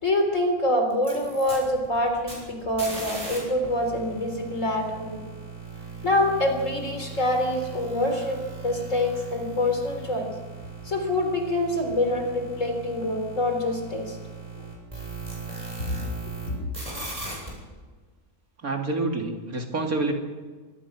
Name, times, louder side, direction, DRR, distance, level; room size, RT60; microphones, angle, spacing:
voice 1, 0.0-5.2 6.0-8.4 8.6-10.3 10.9-14.2 15.9-16.0, left 1 dB, 55° left, 4 dB, 4.1 m, -25 dB
sound 1, 0.9-3.4 3.6-16.5 16.7-17.5, right 4 dB, 25° right, 8.3 m, -38 dB
voice 2, 18.6-20.1, right 3 dB, 75° right, 3 dB, 3.2 m, -27 dB
25.0 x 18.0 x 6.1 m, 1.4 s
omnidirectional pair, 1.5 m